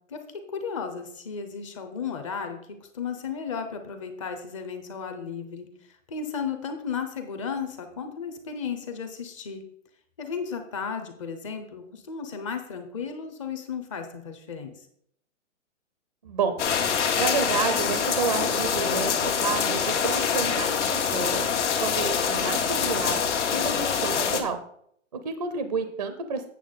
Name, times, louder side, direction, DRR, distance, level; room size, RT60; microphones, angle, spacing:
voice 1, 0.1-9.6 10.2-14.9, left 6 dB, 25° left, 6 dB, 0.7 m, -34 dB
voice 2, 16.2-16.6 17.2-21.5 21.8-23.3 23.5-24.6 25.1-26.5, right 5 dB, 30° right, 9 dB, 0.5 m, -30 dB
sound 1, 16.6-24.4, left 7 dB, 65° left, 1.4 m, -25 dB
8.4 x 6.9 x 4.0 m, 0.67 s
hypercardioid pair, 170°, 38 cm